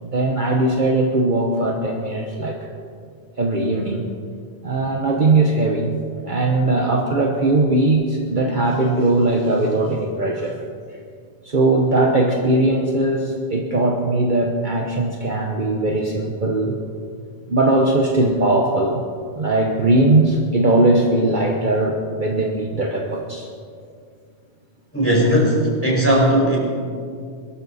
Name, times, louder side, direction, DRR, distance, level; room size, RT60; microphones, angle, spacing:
voice 1, 0.0-2.6 3.4-4.1 4.6-10.6 11.4-16.8 17.5-19.0 19.3-23.5 25.3-25.4, right 2 dB, 45° right, 1 dB, 1.2 m, -19 dB
voice 2, 24.9-26.6, equal, 10° left, -4 dB, 4.9 m, -17 dB
22.5 x 13.0 x 4.2 m, 2.2 s
omnidirectional pair, 1.1 m